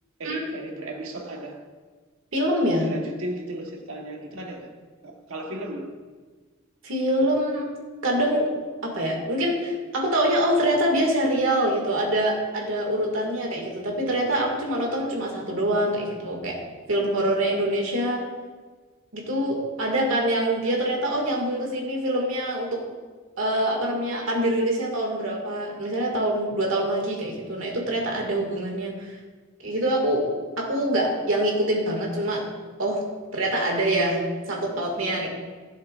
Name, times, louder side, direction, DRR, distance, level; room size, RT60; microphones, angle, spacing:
voice 1, 0.2-1.7 2.8-4.7 5.0-5.9, right 1 dB, 85° right, 1.3 m, -35 dB
voice 2, 2.3-2.9 6.8-7.7 8.0-8.5 8.8-16.6 16.9-18.2 19.1-22.8 23.4-29.2 29.6-30.2 30.6-32.4 32.8-33.0 33.3-34.2 34.5-35.3, right 1 dB, 70° right, 2.1 m, -25 dB
15.5 x 7.1 x 2.5 m
head